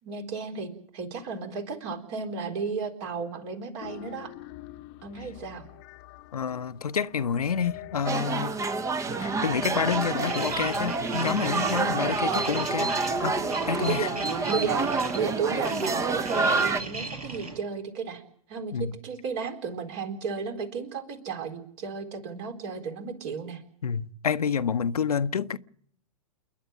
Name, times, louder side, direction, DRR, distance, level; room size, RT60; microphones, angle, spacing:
voice 1, 0.0-4.3 5.0-5.7 13.8-14.2 14.5-18.2 18.5-23.6, right 5 dB, 50° right, 4.1 m, -33 dB
sound 1, 3.8-14.5, left 16 dB, 45° left, 0.9 m, -45 dB
voice 2, 6.3-8.5 9.2-12.9 13.2-13.4 13.6-14.1 18.7-18.9 23.8-25.6, left 7 dB, 85° left, 0.8 m, -28 dB
sound 2, 8.0-16.8, right 4 dB, 15° right, 0.9 m, -28 dB
sound 3, 9.1-17.6, right 2 dB, 80° right, 6.0 m, -38 dB
29.0 x 11.0 x 8.7 m
hypercardioid pair, 110°, 19 cm